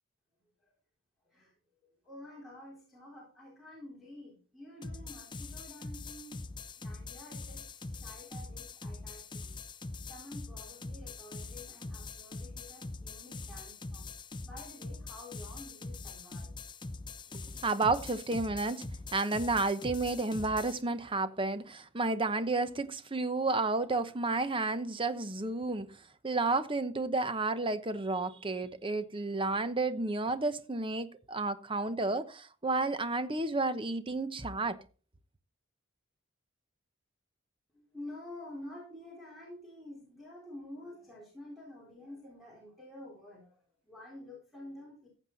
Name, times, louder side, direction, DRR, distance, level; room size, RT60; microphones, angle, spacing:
voice 1, 1.8-6.4 6.8-9.5 10.1-14.1 14.4-16.5 37.7-45.1, left 1 dB, ahead, 4.1 m, -49 dB
sound 1, 4.8-20.8, left 3 dB, 20° left, 0.6 m, -43 dB
voice 2, 17.6-25.9 26.2-34.8, right 3 dB, 25° right, 0.9 m, -31 dB
15.0 x 8.2 x 4.1 m
head